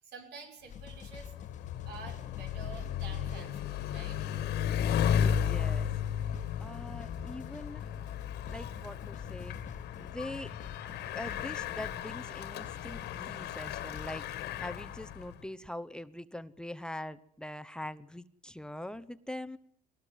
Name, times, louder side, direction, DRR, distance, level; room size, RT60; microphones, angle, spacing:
voice 1, 0.0-1.3 1.9-4.3, right 5 dB, 75° right, 4 dB, 6.1 m, -49 dB
sound 1, 0.7-14.2, left 7 dB, 45° left, 1.5 m, -49 dB
Bicycle, 0.8-15.4, left 9 dB, 80° left, 2.3 m, -34 dB
voice 2, 5.2-5.9 6.6-7.9 8.5-9.5 10.0-10.5 11.1-19.6, left 1 dB, 5° left, 10 dB, 1.0 m, -43 dB
22.5 x 19.0 x 9.2 m, 0.66 s
cardioid pair, 110°, 17 cm